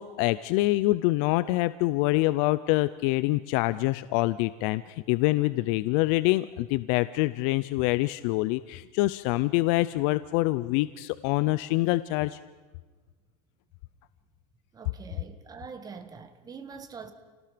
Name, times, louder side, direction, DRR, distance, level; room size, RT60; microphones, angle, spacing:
voice 1, 0.0-12.4, left 19 dB, 55° left, 15 dB, 0.6 m, -25 dB
voice 2, 14.7-17.1, right 5 dB, 20° right, 8 dB, 1.7 m, -44 dB
29.0 x 18.5 x 5.1 m, 1.4 s
supercardioid pair, 140°, 20 cm